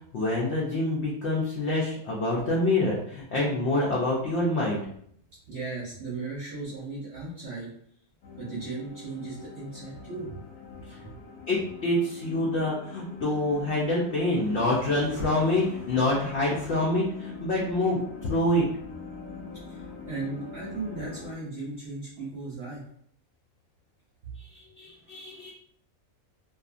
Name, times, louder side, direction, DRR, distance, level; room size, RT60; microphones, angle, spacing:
voice 1, 0.1-4.8 11.5-18.6 24.4-25.5, left 1 dB, 60° left, -4 dB, 0.8 m, -26 dB
voice 2, 5.5-7.7 8.4-10.4 11.0-11.1 19.7-22.8 24.2-24.3, right 3 dB, 55° right, -6 dB, 0.8 m, -36 dB
sound 1, 8.2-21.3, left 5 dB, 80° left, 1.1 m, -44 dB
2.6 x 2.3 x 2.4 m, 0.67 s
omnidirectional pair, 1.5 m